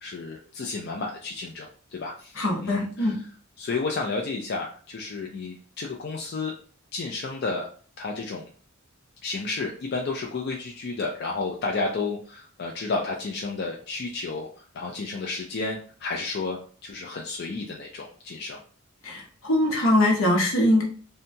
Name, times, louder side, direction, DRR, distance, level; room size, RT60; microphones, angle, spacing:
voice 1, 0.0-2.4 2.6-3.2 3.6-6.5 6.9-7.7 8.0-8.5 9.2-14.5 14.7-18.6, left 3 dB, 55° left, 0 dB, 0.4 m, -31 dB
voice 2, 2.4-3.1 19.0-20.8, left 1 dB, 80° left, 0 dB, 0.9 m, -22 dB
2.7 x 2.2 x 2.6 m, 0.43 s
head